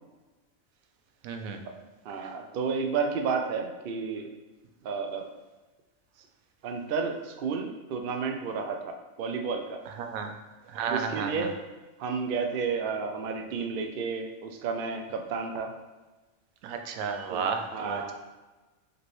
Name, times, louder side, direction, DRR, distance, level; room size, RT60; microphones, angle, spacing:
voice 1, 1.2-1.6 10.0-10.3 10.7-11.5 16.6-18.1, right 6 dB, 90° right, 5 dB, 1.0 m, -32 dB
voice 2, 2.0-4.3 4.8-5.3 6.6-9.8 10.9-11.5 12.0-15.7 17.3-18.1, right 5 dB, 65° right, 4 dB, 0.5 m, -31 dB
5.1 x 3.0 x 3.0 m, 1.2 s
omnidirectional pair, 1.4 m